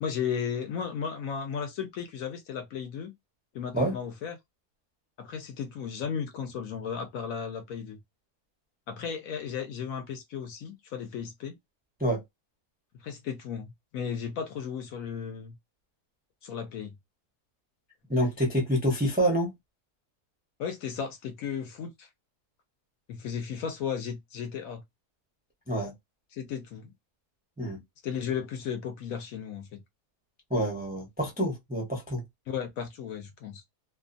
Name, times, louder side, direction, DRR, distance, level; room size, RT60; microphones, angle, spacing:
voice 1, 0.0-3.1 3.5-4.4 5.2-8.0 8.9-11.6 13.0-15.5 16.4-16.9 20.6-22.1 23.1-24.8 26.3-26.9 28.0-29.8 32.5-33.6, left 7 dB, 70° left, 0.9 m, -35 dB
voice 2, 18.1-19.5 25.7-25.9 27.6-27.8 30.5-32.2, equal, 10° right, 0.4 m, -27 dB
2.5 x 2.3 x 2.5 m
omnidirectional pair, 1.7 m